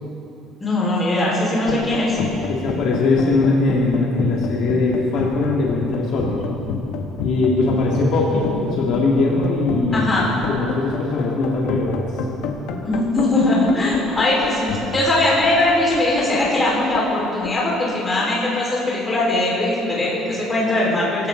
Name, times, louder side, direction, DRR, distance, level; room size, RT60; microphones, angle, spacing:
voice 1, 0.6-2.2 9.9-10.3 12.8-21.3, left 2 dB, 15° left, -6 dB, 4.7 m, -20 dB
sound 1, 1.7-18.5, left 5 dB, 75° left, 1.5 m, -29 dB
voice 2, 2.5-6.4 7.2-10.1 10.5-12.0, left 3 dB, 55° left, -4 dB, 2.3 m, -20 dB
22.5 x 16.5 x 3.9 m, 3.0 s
cardioid pair, 165°, 0 cm